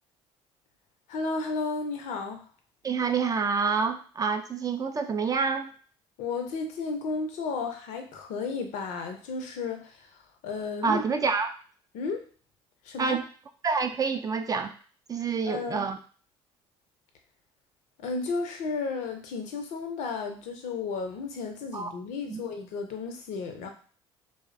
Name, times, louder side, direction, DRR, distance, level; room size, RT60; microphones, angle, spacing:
voice 1, 1.1-2.4 6.2-11.0 11.9-12.2 12.8-13.2 15.5-15.8 18.0-23.7, left 4 dB, 65° left, 5 dB, 0.5 m, -33 dB
voice 2, 2.8-5.7 10.8-11.5 13.0-13.2 13.6-14.7 15.1-16.0 21.7-21.9 22.3-22.4, right 5 dB, 25° right, 7 dB, 0.3 m, -27 dB
2.5 x 2.0 x 2.5 m, 0.42 s
hypercardioid pair, 65°, 13 cm